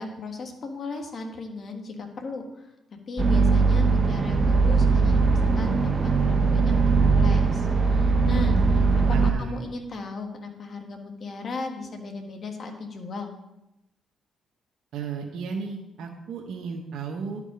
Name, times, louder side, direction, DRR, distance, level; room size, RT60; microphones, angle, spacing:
voice 1, 0.0-2.7 3.1-8.9 9.2-13.3, left 3 dB, 50° left, 4 dB, 1.6 m, -36 dB
sound 1, 3.2-9.3, right 4 dB, 30° right, 0.9 m, -20 dB
voice 2, 9.1-9.6 14.9-17.4, right 5 dB, 75° right, 0 dB, 1.1 m, -34 dB
11.5 x 5.0 x 5.0 m, 0.90 s
cardioid pair, 90°, 0 cm